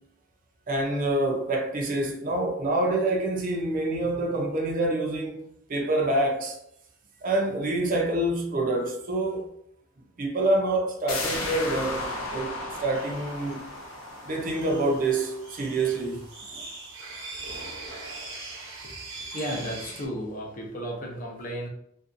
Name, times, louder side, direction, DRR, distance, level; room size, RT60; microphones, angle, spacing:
voice 1, 0.7-5.4 5.7-6.6 7.2-9.5 10.2-13.7 14.2-16.6, right 2 dB, 40° right, 0.5 m, -27 dB
sound 1, 11.1-16.6 16.9-17.0, left 2 dB, 90° left, 0.5 m, -35 dB
sound 2, 12.9-20.1, right 3 dB, 75° right, 0.8 m, -41 dB
voice 2, 19.3-21.7, equal, 40° left, 0.6 m, -34 dB
2.5 x 2.2 x 2.5 m
head